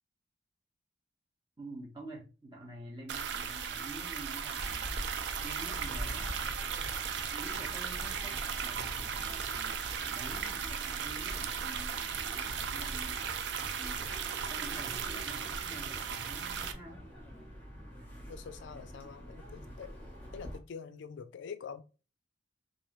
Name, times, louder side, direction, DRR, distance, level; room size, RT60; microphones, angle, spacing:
voice 1, 1.6-5.0 5.4-6.4 7.3-12.0 12.3-13.2 13.8-14.1 14.5-17.1, right 1 dB, 25° right, 0.9 m, -48 dB
sound 1, 3.1-16.7, right 7 dB, 60° right, 0.3 m, -36 dB
sound 2, 4.5-20.6, equal, 10° left, 0.9 m, -46 dB
voice 2, 18.3-20.0 20.3-21.8, left 6 dB, 65° left, 0.3 m, -45 dB
3.0 x 2.6 x 3.0 m
head